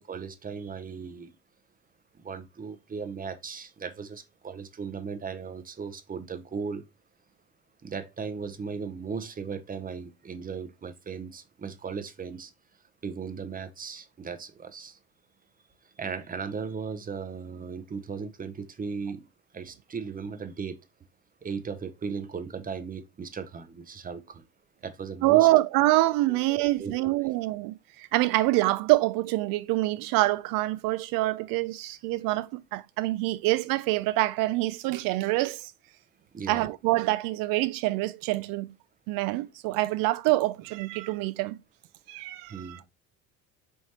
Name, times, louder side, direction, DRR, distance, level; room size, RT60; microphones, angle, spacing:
voice 1, 0.0-1.3 2.2-6.8 7.8-12.5 13.0-15.0 16.0-19.2 19.5-20.8 21.4-24.5 24.8-25.5 26.3-27.1 36.3-36.7 42.5-42.8, right 5 dB, 20° right, 0.7 m, -37 dB
voice 2, 25.2-35.7 36.5-38.7 39.1-41.6 42.1-42.8, right 18 dB, 55° right, 0.5 m, -26 dB
4.4 x 3.1 x 2.9 m
hypercardioid pair, 65°, 40 cm